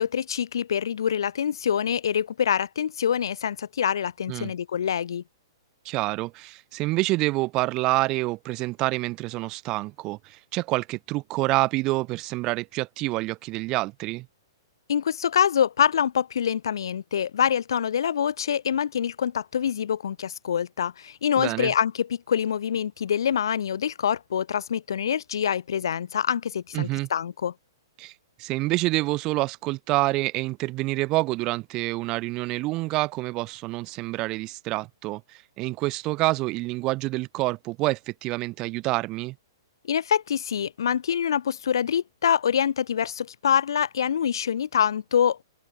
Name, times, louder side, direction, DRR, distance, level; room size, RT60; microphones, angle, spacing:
voice 1, 0.0-5.2 14.9-27.5 39.8-45.4, left 8 dB, 85° left, 0.5 m, -25 dB
voice 2, 5.8-14.3 21.4-21.7 26.7-27.1 28.0-28.1 28.4-39.4, right 21 dB, 25° right, 1.0 m, -27 dB
open air
hypercardioid pair, 165°, 2 cm